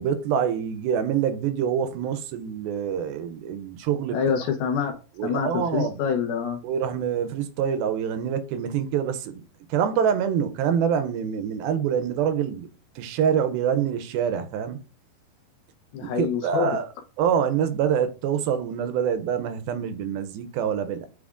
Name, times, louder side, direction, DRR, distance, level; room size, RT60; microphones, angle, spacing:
voice 1, 0.0-4.2 5.2-6.0 6.6-9.4 9.7-12.7 13.0-14.8 16.0-16.9 17.2-21.1, right 8 dB, 80° right, 2.4 m, -25 dB
voice 2, 4.1-4.9 5.2-6.6 15.9-16.7, left 7 dB, 80° left, 2.7 m, -26 dB
8.4 x 4.5 x 2.5 m
omnidirectional pair, 4.4 m